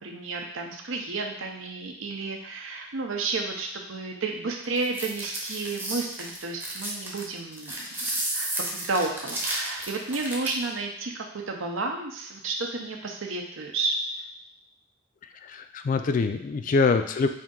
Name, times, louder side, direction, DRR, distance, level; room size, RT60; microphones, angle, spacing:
voice 1, 0.0-7.8 8.0-14.0, right 3 dB, 75° right, 2 dB, 0.7 m, -32 dB
sound 1, 4.8-10.7, right 1 dB, 10° right, 0.7 m, -32 dB
voice 2, 15.5-17.3, left 4 dB, 40° left, 7 dB, 0.3 m, -24 dB
4.4 x 2.6 x 3.7 m, 0.71 s
head